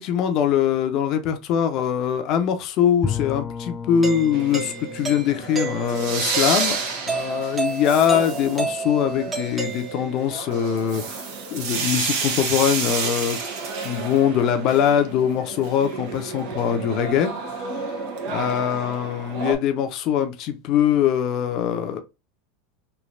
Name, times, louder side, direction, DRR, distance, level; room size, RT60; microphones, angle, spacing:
voice 1, 0.0-6.8 7.1-11.2 11.5-13.4 13.8-17.9 18.3-22.0, left 9 dB, 50° left, 0.7 m, -22 dB
Bowed string instrument, 3.0-7.8, left 6 dB, 20° left, 0.4 m, -34 dB
Doorbell, 4.0-10.4, right 4 dB, 20° right, 0.9 m, -31 dB
sound 1, 4.3-19.6, right 4 dB, 65° right, 0.9 m, -30 dB
3.2 x 2.6 x 2.5 m
hypercardioid pair, 95°, 0 cm